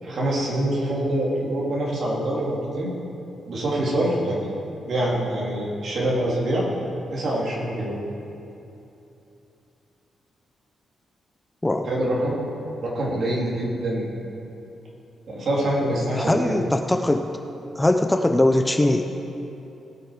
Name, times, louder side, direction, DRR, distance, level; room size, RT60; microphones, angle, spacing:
voice 1, 0.0-2.9 3.5-4.5 4.9-6.7 7.1-8.0 11.8-12.4 12.8-14.1 15.3-16.5, right 1 dB, 55° right, -5 dB, 2.9 m, -25 dB
voice 2, 16.2-17.3 17.8-19.0, left 1 dB, 10° left, 5 dB, 0.5 m, -20 dB
18.5 x 6.5 x 5.0 m, 2.9 s
cardioid pair, 130°, 0 cm